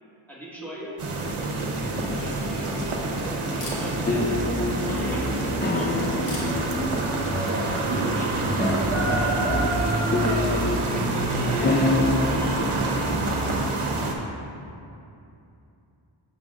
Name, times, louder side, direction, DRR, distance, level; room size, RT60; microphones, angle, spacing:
voice 1, 0.3-0.9 1.9-3.0 3.5-4.4 4.7-5.3 5.7-6.1 8.1-8.3 9.1-13.0, equal, 5° left, -8 dB, 1.5 m, -38 dB
sound 1, 1.0-14.1, right 2 dB, 80° right, 0.8 m, -26 dB
Camera, 1.2-9.5, left 1 dB, 85° left, 1.3 m, -47 dB
sound 2, 3.7-14.3, left 2 dB, 25° left, 0.3 m, -29 dB
voice 2, 7.3-8.5, right 1 dB, 30° right, -8 dB, 0.9 m, -32 dB
6.7 x 6.5 x 2.4 m, 2.6 s
wide cardioid pair, 85°, 50 cm